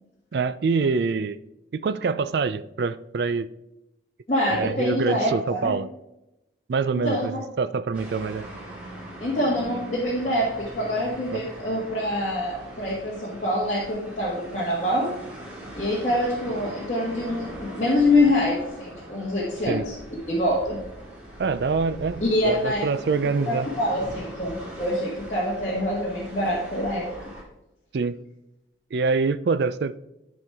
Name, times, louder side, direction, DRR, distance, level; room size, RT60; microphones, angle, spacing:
voice 1, 0.3-1.4 1.7-3.5 4.5-5.9 6.7-8.5 11.3-11.4 19.7-19.9 21.4-23.7 27.9-28.2 28.9-30.0, right 4 dB, 60° right, 0.4 m, -25 dB
voice 2, 4.3-5.8 6.9-7.3 9.2-15.1 15.8-20.0 20.3-20.8 22.2-22.9 23.5-27.3, left 1 dB, 40° left, 1.5 m, -25 dB
sound 1, 7.9-27.4, right 1 dB, 10° right, 2.0 m, -41 dB
12.5 x 4.5 x 3.5 m
head